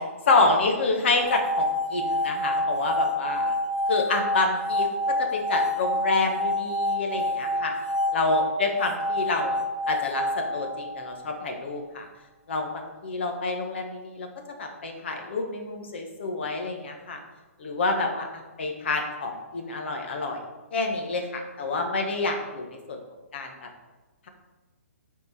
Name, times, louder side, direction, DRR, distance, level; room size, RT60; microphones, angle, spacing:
voice 1, 0.3-3.5 3.9-4.9 5.2-7.7 8.1-9.6 9.9-12.1 12.5-14.3 14.6-17.2 17.6-20.4 20.7-23.0 23.3-23.5, left 3 dB, 50° left, 3 dB, 1.3 m, -28 dB
sound 1, 1.2-11.3, left 1 dB, 80° left, 0.9 m, -28 dB
10.5 x 4.5 x 4.3 m, 1.2 s
hypercardioid pair, 175°, 8 cm